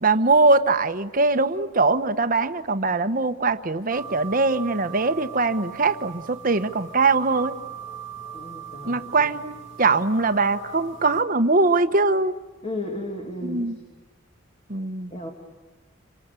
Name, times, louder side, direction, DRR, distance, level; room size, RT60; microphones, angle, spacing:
voice 1, 0.0-7.5 8.8-9.5 9.8-12.3 13.4-13.8 14.7-15.1, right 3 dB, 45° right, 10 dB, 1.1 m, -21 dB
sound 1, 3.9-11.2, right 6 dB, 65° left, 2.3 m, -40 dB
voice 2, 8.3-9.3 12.6-13.6 15.1-15.3, left 1 dB, 30° left, 0 dB, 2.5 m, -34 dB
27.5 x 25.0 x 8.4 m, 1.2 s
head